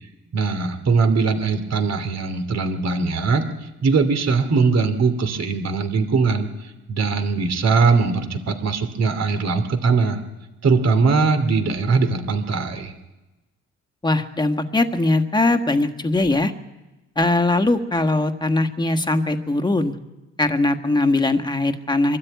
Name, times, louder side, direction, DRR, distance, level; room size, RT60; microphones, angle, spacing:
voice 1, 0.3-10.2 10.6-12.9, right 4 dB, 60° right, 8 dB, 2.8 m, -21 dB
voice 2, 14.0-16.5 17.1-19.9 20.4-22.2, left 2 dB, 15° left, 8 dB, 1.5 m, -20 dB
23.0 x 13.0 x 9.3 m, 1.1 s
cardioid pair, 90°, 30 cm